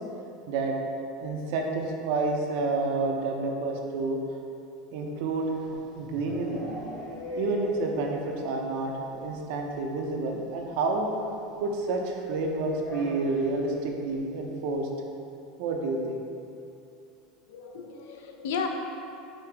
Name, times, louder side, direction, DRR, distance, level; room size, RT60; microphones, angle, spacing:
voice 1, 0.5-0.8 1.2-4.2 4.9-5.7 5.9-6.6 7.4-11.1 11.6-14.9 15.6-16.2, right 3 dB, 70° right, 1 dB, 0.6 m, -29 dB
sound 1, 5.5-8.5 8.8-8.9 9.2-9.3 9.5-9.7 10.9-11.0 12.7-13.6, left 1 dB, 35° left, 1.0 m, -39 dB
voice 2, 17.5-18.7, left 6 dB, 85° left, 3 dB, 0.5 m, -34 dB
5.3 x 2.8 x 3.4 m, 2.6 s
supercardioid pair, 140°, 0 cm